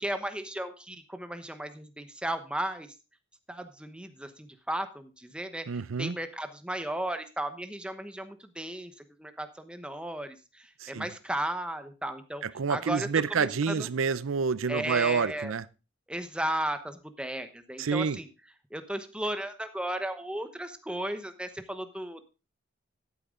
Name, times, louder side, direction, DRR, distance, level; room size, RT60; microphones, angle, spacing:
voice 1, 0.0-2.9 3.5-5.7 6.0-12.4 12.7-13.9 14.7-15.5 16.1-18.3 18.7-22.2, right 1 dB, 5° right, 1.0 m, -35 dB
voice 2, 5.7-6.2 10.8-11.1 12.4-15.7 17.8-18.2, right 5 dB, 85° right, 0.6 m, -28 dB
13.0 x 8.5 x 3.7 m
head